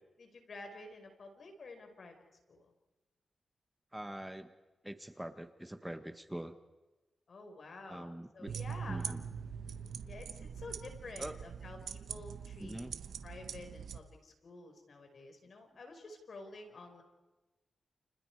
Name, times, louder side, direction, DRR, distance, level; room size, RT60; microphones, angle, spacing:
voice 1, 0.2-2.1 2.5-2.7 7.3-9.2 10.1-12.8 13.2-17.0, left 3 dB, 65° left, 5 dB, 5.2 m, -50 dB
voice 2, 3.9-4.5 4.8-6.6 7.9-9.2 11.2-11.4 12.6-13.0, right 1 dB, 10° right, 9 dB, 1.6 m, -44 dB
sound 1, 8.5-14.0, right 7 dB, 85° right, 1.1 m, -43 dB
30.0 x 29.5 x 4.9 m, 1.1 s
cardioid pair, 60°, 0 cm